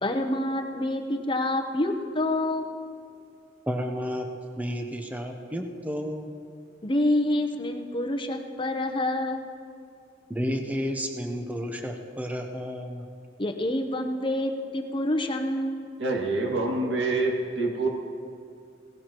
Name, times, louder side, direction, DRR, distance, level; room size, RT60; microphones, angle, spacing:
voice 1, 0.0-2.7 6.8-9.4 13.4-15.8, left 1 dB, 25° left, 5 dB, 0.8 m, -27 dB
voice 2, 3.7-6.3 10.3-13.1, equal, 10° right, 3 dB, 0.8 m, -31 dB
voice 3, 16.0-17.9, right 2 dB, 85° right, 0 dB, 2.0 m, -26 dB
18.0 x 16.0 x 3.0 m, 2.4 s
head